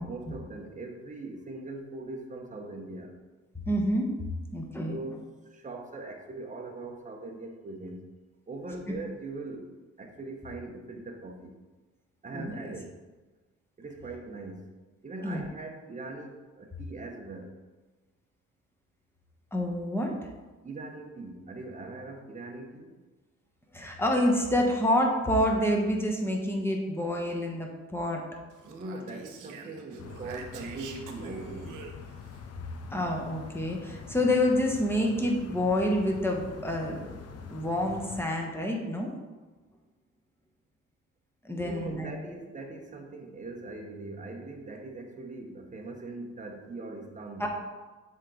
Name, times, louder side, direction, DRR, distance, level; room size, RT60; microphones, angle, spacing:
voice 1, 0.0-3.1 4.8-5.2 5.5-8.0 8.5-11.6 12.2-13.0 13.8-14.7 15.0-17.5 20.6-23.0 28.6-31.8 41.5-47.5, right 2 dB, 25° right, 3 dB, 1.0 m, -41 dB
voice 2, 3.7-4.1 4.5-5.0 12.3-12.5 15.2-15.4 19.5-20.1 23.7-28.2 32.9-37.1 37.5-39.1 41.4-42.1 47.4-47.5, left 1 dB, 10° left, 0 dB, 1.2 m, -27 dB
Speech, 28.5-32.4, right 6 dB, 90° right, 0.8 m, -46 dB
sound 1, 30.0-38.2, left 6 dB, 55° left, 0.7 m, -45 dB
7.5 x 3.7 x 3.9 m, 1.3 s
cardioid pair, 90°, 30 cm